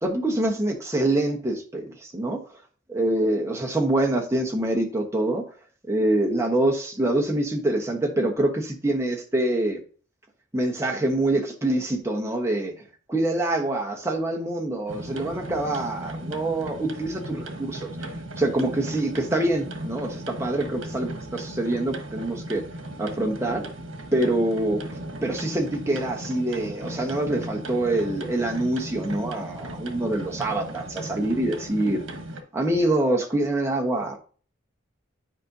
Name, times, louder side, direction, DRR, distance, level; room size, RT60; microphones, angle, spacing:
voice 1, 0.0-2.4 2.9-5.4 5.9-9.8 10.5-12.7 13.1-18.1 18.4-22.6 23.0-23.7 24.1-24.8 25.2-32.0 32.5-34.2, right 1 dB, 15° right, 1 dB, 1.1 m, -25 dB
sound 1, 14.9-32.4, right 1 dB, 80° right, 1.2 m, -36 dB
9.7 x 5.1 x 2.6 m, 0.41 s
head